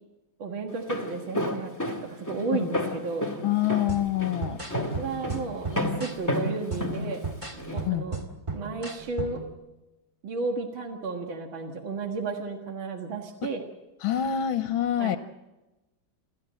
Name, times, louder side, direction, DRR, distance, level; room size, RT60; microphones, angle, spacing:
voice 1, 0.4-3.3 4.8-7.2 7.5-8.2 8.5-9.5 10.2-13.6 15.0-15.2, right 4 dB, 75° right, 2 dB, 2.5 m, -33 dB
Walk footsteps, 0.7-7.8, left 1 dB, 10° left, 1.9 m, -31 dB
voice 2, 3.4-4.6 7.8-8.1 14.0-15.2, left 11 dB, 90° left, 9 dB, 1.7 m, -26 dB
sound 1, 3.9-9.5, right 3 dB, 15° right, 1.8 m, -36 dB
29.0 x 13.5 x 7.7 m, 1.1 s
omnidirectional pair, 2.2 m